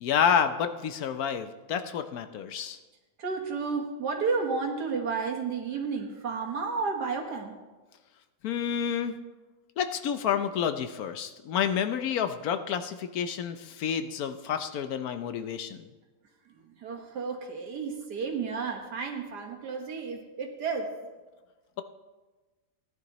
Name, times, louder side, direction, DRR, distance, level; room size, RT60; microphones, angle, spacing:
voice 1, 0.0-2.8 8.4-9.1 9.8-15.8, left 8 dB, 70° left, 9 dB, 1.1 m, -29 dB
voice 2, 3.2-7.5 16.8-20.9, right 5 dB, 85° right, 2 dB, 2.1 m, -32 dB
17.0 x 11.0 x 3.0 m, 1.2 s
omnidirectional pair, 1.7 m